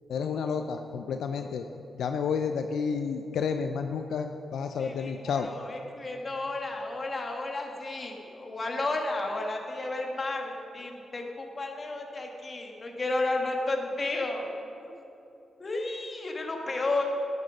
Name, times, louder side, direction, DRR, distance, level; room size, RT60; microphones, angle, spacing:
voice 1, 0.1-1.6 2.0-5.5, left 6 dB, 85° left, 6 dB, 0.4 m, -30 dB
voice 2, 4.8-14.5 14.8-14.9 15.6-17.0, left 2 dB, 40° left, 1 dB, 1.7 m, -32 dB
10.5 x 9.8 x 5.2 m, 2.8 s
cardioid pair, 80°, 0 cm